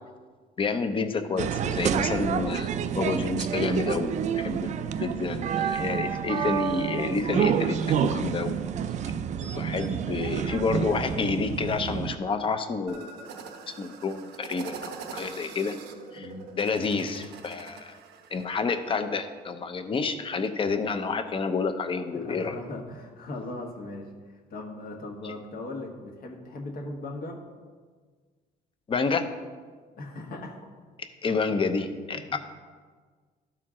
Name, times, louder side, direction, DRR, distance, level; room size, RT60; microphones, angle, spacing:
voice 1, 0.6-8.6 9.4-13.1 13.7-15.7 16.1-16.3 16.6-18.0 18.3-22.6 25.2-25.3 28.9-29.2 31.2-32.4, left 4 dB, 30° left, 8 dB, 0.7 m, -29 dB
sound 1, 1.4-12.2, right 8 dB, 45° right, 0.4 m, -28 dB
sound 2, 12.9-18.5, right 5 dB, 85° right, 0.8 m, -43 dB
voice 2, 16.2-16.5 22.1-27.4 30.0-30.7 32.1-32.4, left 2 dB, 60° left, 1 dB, 1.4 m, -39 dB
12.5 x 4.4 x 3.7 m, 1.5 s
cardioid pair, 110°, 17 cm